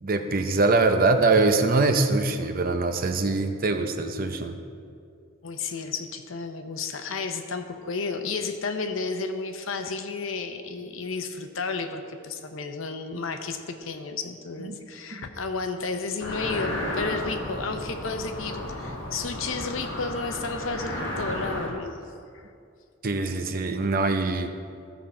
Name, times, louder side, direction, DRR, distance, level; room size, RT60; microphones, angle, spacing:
voice 1, 0.0-4.5 15.1-15.2 23.0-24.5, right 3 dB, 45° right, 6 dB, 0.6 m, -23 dB
voice 2, 5.4-22.0 22.3-22.5, left 4 dB, 80° left, 7 dB, 0.8 m, -32 dB
sound 1, 16.2-21.7, left 1 dB, 65° left, 2.2 m, -33 dB
14.0 x 5.6 x 4.3 m, 2.4 s
head